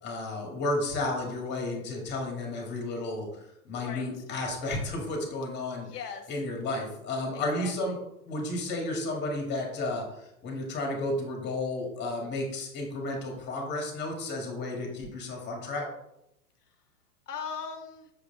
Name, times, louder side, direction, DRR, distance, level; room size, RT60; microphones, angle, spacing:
voice 1, 0.0-5.9 6.3-8.0 8.2-15.9, left 2 dB, 20° left, 1 dB, 2.1 m, -32 dB
voice 2, 3.8-4.2 5.8-6.3 7.3-8.0 16.6-16.8 17.3-18.1, left 6 dB, 80° left, 5 dB, 0.9 m, -40 dB
6.6 x 5.1 x 3.4 m, 0.83 s
hypercardioid pair, 125°, 46 cm